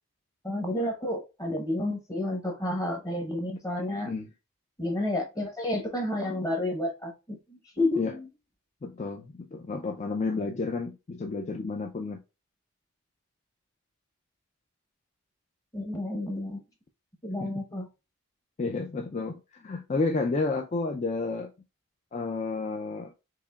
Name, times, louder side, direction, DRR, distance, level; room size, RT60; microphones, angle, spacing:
voice 1, 0.4-4.1 4.8-8.3 15.7-16.6 17.2-17.9, left 1 dB, 15° left, 0.8 m, -30 dB
voice 2, 8.8-12.2 17.4-17.5 18.6-21.5 22.1-23.1, left 3 dB, 30° left, 0.3 m, -31 dB
4.6 x 2.9 x 2.2 m
head